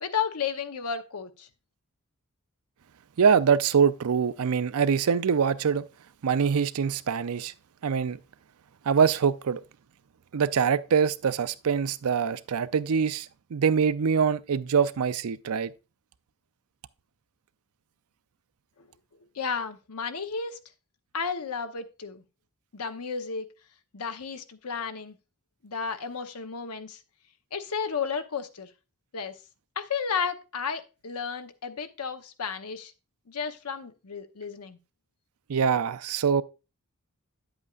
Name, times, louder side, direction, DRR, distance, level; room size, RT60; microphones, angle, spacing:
voice 1, 0.0-1.5 18.8-18.9 19.3-20.6 21.1-22.2 22.7-23.5 23.9-25.2 25.6-27.0 27.5-28.7 29.1-29.3 29.8-32.9 33.3-34.8, left 6 dB, 85° left, 0.9 m, -33 dB
voice 2, 3.2-5.9 6.2-7.5 7.8-8.2 8.9-9.6 10.3-15.7 35.5-36.4, right 6 dB, 75° right, 0.5 m, -24 dB
9.6 x 8.0 x 2.4 m
head